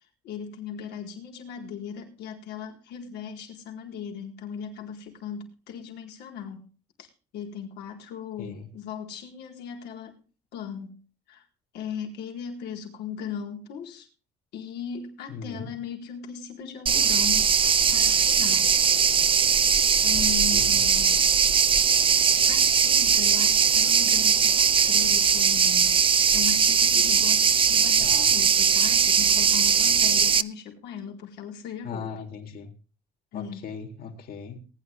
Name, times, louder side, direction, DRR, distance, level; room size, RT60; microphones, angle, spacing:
voice 1, 0.2-6.7 7.0-10.2 10.5-11.0 11.3-11.5 11.7-14.1 14.5-17.5 17.9-18.7 19.2-19.5 20.0-21.3 22.4-25.9 26.3-32.1 33.3-33.7, left 7 dB, 80° left, 4.2 m, -38 dB
voice 2, 15.3-15.7 20.1-20.2 20.5-20.8 28.0-28.3 31.8-32.7 33.3-34.6, left 6 dB, 65° left, 3.9 m, -38 dB
sound 1, 16.9-30.4, right 6 dB, 30° right, 0.7 m, -20 dB
20.0 x 10.5 x 3.5 m
cardioid pair, 110°, 17 cm